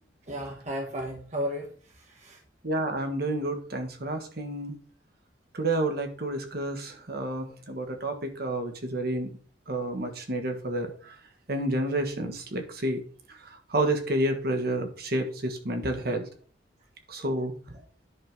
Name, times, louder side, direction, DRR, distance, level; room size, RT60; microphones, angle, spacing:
voice 1, 0.3-2.4 17.7-17.8, equal, 40° right, 1 dB, 1.2 m, -34 dB
voice 2, 2.6-4.7 5.5-9.3 9.7-11.1 11.5-13.0 13.3-16.3 17.1-17.5, right 1 dB, 55° right, 5 dB, 1.5 m, -30 dB
10.0 x 3.7 x 6.0 m, 0.43 s
head